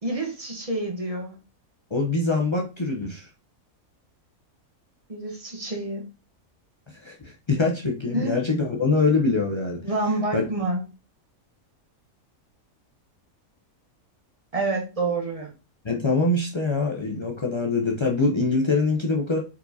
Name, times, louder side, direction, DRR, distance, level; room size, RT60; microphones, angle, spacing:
voice 1, 0.0-1.4 5.1-6.0 8.1-8.3 9.8-10.8 14.5-15.5, right 2 dB, 30° right, 1 dB, 0.9 m, -28 dB
voice 2, 1.9-3.3 6.9-9.9 10.3-10.4 15.8-19.4, left 3 dB, 50° left, -1 dB, 0.3 m, -24 dB
4.6 x 4.3 x 2.7 m, 0.31 s
omnidirectional pair, 1.5 m